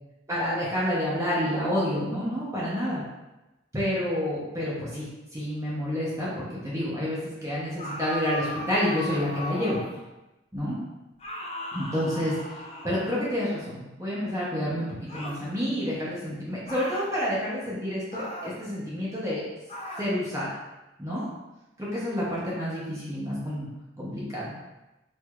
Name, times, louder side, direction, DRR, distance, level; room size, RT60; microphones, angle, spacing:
voice 1, 0.3-3.0 3.7-5.1 5.3-9.8 10.5-10.8 11.7-12.3 12.8-19.4 20.0-20.5 21.0-21.3 21.8-23.7 24.0-24.5, equal, 15° right, -7 dB, 0.7 m, -29 dB
sound 1, 7.8-10.1 11.2-13.5 15.1-15.5 16.7-17.1 18.1-18.6 19.7-20.2, left 1 dB, 35° left, 0.4 m, -37 dB
4.5 x 2.6 x 2.3 m, 1.0 s
head